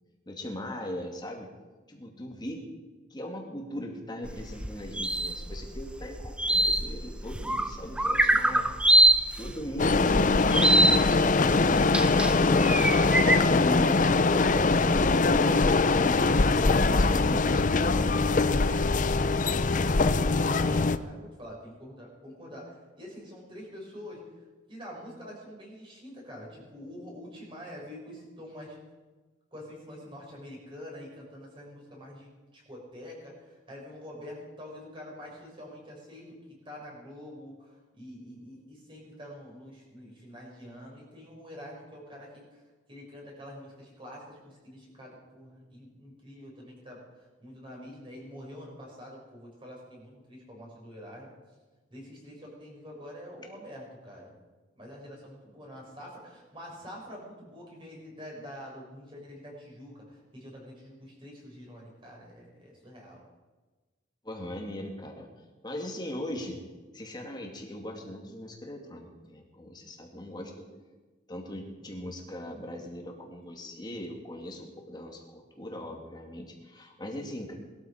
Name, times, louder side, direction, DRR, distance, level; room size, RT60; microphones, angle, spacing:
voice 1, 0.3-1.5 1.9-2.7 3.1-8.7 9.4-10.9 11.5-19.1 64.2-65.3 65.6-66.6 66.9-70.7 71.3-77.5, equal, 20° left, 2 dB, 2.4 m, -39 dB
sound 1, 4.3-13.4, right 1 dB, 5° right, 0.7 m, -24 dB
sound 2, 9.8-21.0, left 3 dB, 40° left, 0.6 m, -23 dB
voice 2, 20.5-24.2 24.7-28.8 29.5-42.6 42.9-51.4 51.9-54.3 54.7-63.2, equal, 25° right, -2 dB, 6.2 m, -46 dB
21.0 x 13.5 x 5.1 m, 1.3 s
head